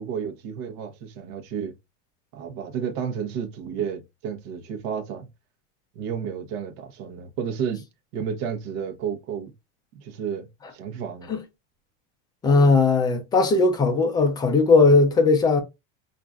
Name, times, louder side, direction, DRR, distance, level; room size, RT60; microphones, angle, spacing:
voice 1, 0.0-1.7 2.3-5.3 5.9-7.8 8.1-9.5 9.9-11.3, right 7 dB, 55° right, 1.0 m, -31 dB
voice 2, 12.4-15.6, left 3 dB, 10° left, 0.4 m, -18 dB
5.6 x 2.6 x 2.4 m
supercardioid pair, 170°, 36 cm